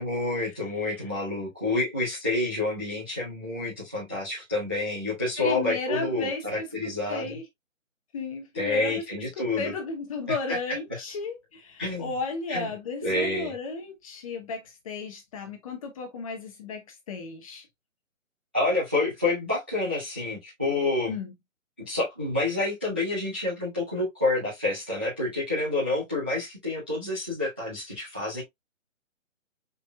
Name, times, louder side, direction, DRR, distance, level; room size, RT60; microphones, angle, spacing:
voice 1, 0.0-7.4 8.5-9.7 11.8-12.1 12.5-12.7 13.0-13.5 18.5-21.1 21.9-28.4, left 2 dB, 10° right, 0.5 m, -28 dB
voice 2, 5.4-7.4 8.1-9.0 9.4-17.7 21.1-21.3, left 4 dB, 25° left, 1.2 m, -34 dB
4.8 x 4.2 x 2.2 m
hypercardioid pair, 160°, 40 cm